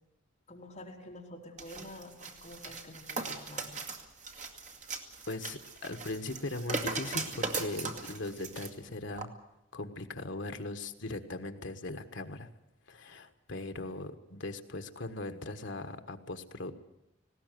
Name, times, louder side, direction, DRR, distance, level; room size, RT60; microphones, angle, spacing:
voice 1, 0.5-3.8 4.5-4.6 13.8-13.9, left 1 dB, 35° left, -1 dB, 3.7 m, -48 dB
sound 1, 1.6-8.7 9.1-9.3, right 3 dB, 40° right, 2.0 m, -39 dB
voice 2, 5.3-9.3 9.7-12.5 12.9-16.7, left 2 dB, 65° left, 7 dB, 1.5 m, -39 dB
19.0 x 17.0 x 9.3 m, 0.87 s
head